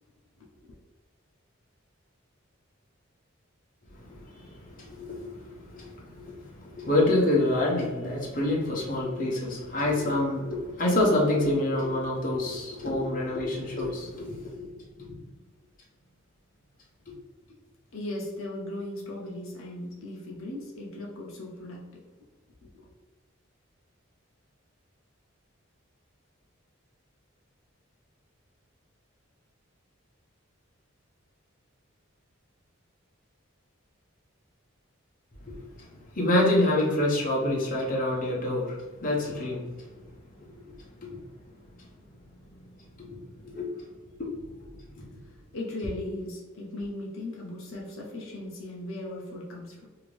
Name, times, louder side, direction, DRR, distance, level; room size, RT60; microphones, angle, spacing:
voice 1, 3.9-14.7 17.1-17.2 35.6-39.7 40.0-40.1 40.4-40.7 40.9-41.2 43.0-43.1 43.4-43.7 44.2-44.3 45.0-45.1, left 1 dB, 40° left, -4 dB, 0.8 m, -27 dB
voice 2, 17.9-22.0 22.6-22.9 45.5-49.9, left 1 dB, 75° left, -3 dB, 0.7 m, -37 dB
2.8 x 2.5 x 3.1 m, 1.2 s
head